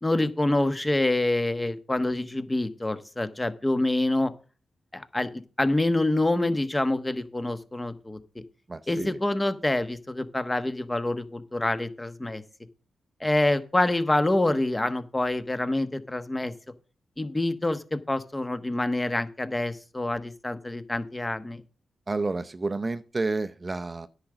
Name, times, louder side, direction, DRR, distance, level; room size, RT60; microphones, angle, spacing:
voice 1, 0.0-4.3 4.9-5.3 5.6-8.2 8.9-12.4 13.2-16.5 17.2-21.6, left 1 dB, 20° left, 11 dB, 1.2 m, -26 dB
voice 2, 8.7-9.2 22.1-24.1, right 3 dB, 30° right, 11 dB, 0.6 m, -30 dB
10.5 x 5.0 x 7.9 m, 0.36 s
cardioid pair, 70°, 0 cm